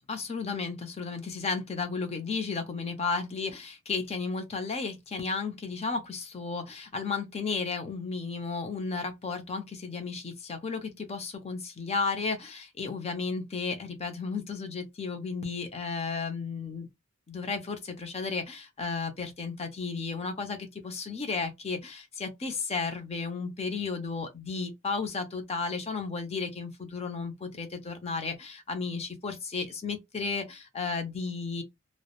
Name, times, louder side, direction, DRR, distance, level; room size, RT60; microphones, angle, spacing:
voice 1, 0.1-16.9 17.3-31.6, left 4 dB, 30° left, 0.5 m, -33 dB
2.2 x 2.0 x 2.9 m
head